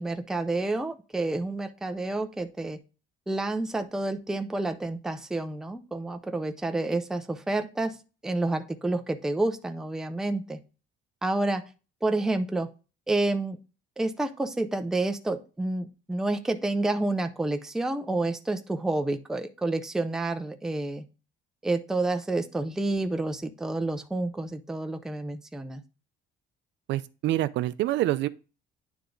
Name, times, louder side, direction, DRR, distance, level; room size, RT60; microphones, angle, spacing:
voice 1, 0.0-2.8 3.3-8.0 8.2-10.6 11.2-11.6 12.0-12.7 13.1-13.6 14.0-21.0 21.6-25.8, right 2 dB, 5° right, 0.4 m, -29 dB
voice 2, 26.9-28.3, right 15 dB, 65° right, 0.4 m, -26 dB
9.6 x 3.5 x 3.8 m
cardioid pair, 170°, 20 cm